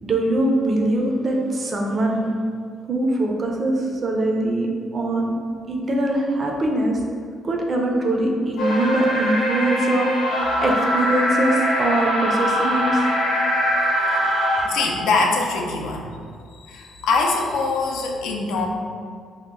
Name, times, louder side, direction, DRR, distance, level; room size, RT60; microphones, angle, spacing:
voice 1, 0.0-2.3 2.9-5.4 5.7-7.0 7.4-10.1 10.6-13.0 13.9-14.9, right 1 dB, 30° right, 0 dB, 0.4 m, -22 dB
sound 1, 8.6-14.6, equal, 70° left, 0.7 m, -22 dB
voice 2, 14.6-16.1 16.5-18.7, left 3 dB, 90° left, 1 dB, 0.4 m, -23 dB
2.8 x 2.0 x 3.6 m, 2.1 s
cardioid pair, 155°, 0 cm